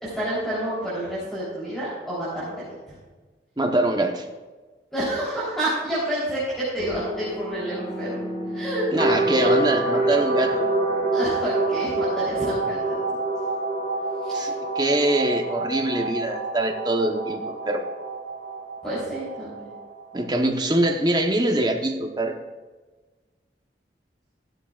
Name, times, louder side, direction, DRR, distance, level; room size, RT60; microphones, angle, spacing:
voice 1, 0.0-2.9 4.9-8.2 8.5-8.9 11.1-13.2 14.2-14.5 18.8-19.7, right 1 dB, ahead, -10 dB, 3.6 m, -29 dB
voice 2, 3.6-4.3 8.9-10.7 14.3-17.9 20.1-22.4, right 1 dB, 25° right, 3 dB, 1.0 m, -24 dB
sound 1, 6.8-20.3, right 2 dB, 40° left, 3.3 m, -27 dB
15.0 x 12.0 x 2.5 m, 1.3 s
head